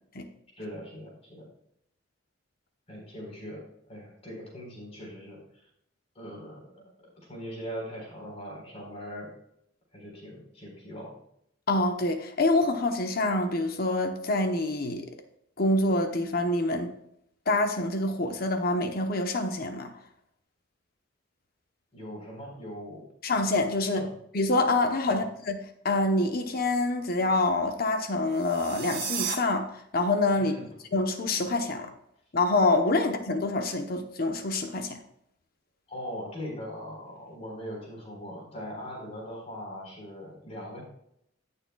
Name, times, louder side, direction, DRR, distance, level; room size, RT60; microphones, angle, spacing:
voice 1, 0.6-1.5 2.9-5.7 6.1-6.9 7.2-9.4 9.9-11.2 21.9-23.1 23.9-24.1 25.1-25.3 30.4-30.7 35.9-40.8, equal, 30° left, -1 dB, 4.1 m, -40 dB
voice 2, 11.7-15.1 15.6-16.9 17.5-19.9 23.2-24.1 24.3-25.6 25.8-30.5 30.9-31.9 32.3-35.0, left 2 dB, 50° left, 6 dB, 0.9 m, -26 dB
sound 1, 28.3-29.4, right 8 dB, 50° right, 1.9 m, -33 dB
17.5 x 6.8 x 2.3 m, 0.73 s
head